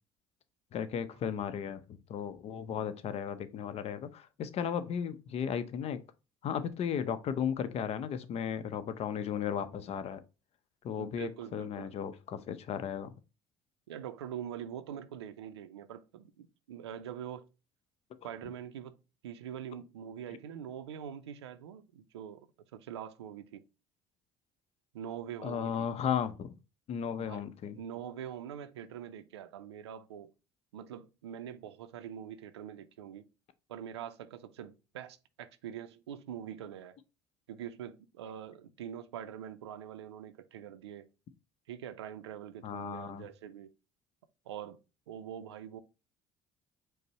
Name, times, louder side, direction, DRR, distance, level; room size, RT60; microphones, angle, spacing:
voice 1, 0.7-1.8 2.1-6.0 6.4-10.2 10.8-13.1 25.4-26.5 26.9-27.8 42.6-43.2, left 8 dB, 50° left, 0.6 m, -35 dB
voice 2, 11.0-11.9 13.9-17.5 18.2-19.0 19.2-23.6 24.9-25.9 27.2-27.4 27.7-30.3 30.7-33.2 33.7-37.0 37.5-41.1 41.7-43.7 44.5-44.8 45.1-45.8, right 9 dB, 90° right, 0.4 m, -44 dB
5.2 x 2.0 x 4.0 m
hypercardioid pair, 60°, 14 cm